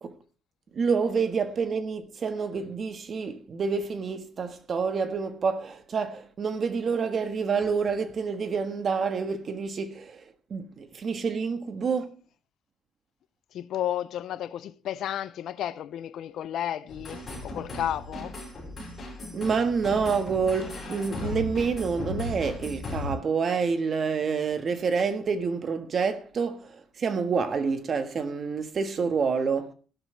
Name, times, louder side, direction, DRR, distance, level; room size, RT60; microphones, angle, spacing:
voice 1, 0.7-10.2 10.5-12.1 19.3-29.7, right 5 dB, 35° right, 1.5 m, -28 dB
voice 2, 13.5-18.4, left 11 dB, 60° left, 0.7 m, -32 dB
sound 1, 16.9-23.1, left 2 dB, 25° left, 6.6 m, -37 dB
16.5 x 12.0 x 3.4 m
cardioid pair, 170°, 0 cm